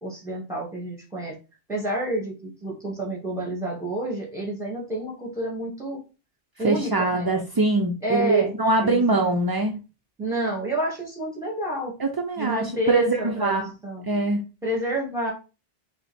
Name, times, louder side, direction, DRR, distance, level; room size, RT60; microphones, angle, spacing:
voice 1, 0.0-1.4 1.7-6.0 6.6-7.3 8.0-8.5 8.8-9.4 10.2-11.9 12.4-14.0 14.6-15.3, right 1 dB, 5° right, -1 dB, 2.0 m, -29 dB
voice 2, 6.6-9.8 12.0-13.7 14.1-14.4, right 2 dB, 40° right, 3 dB, 0.3 m, -23 dB
5.6 x 2.1 x 4.2 m, 0.31 s
omnidirectional pair, 1.1 m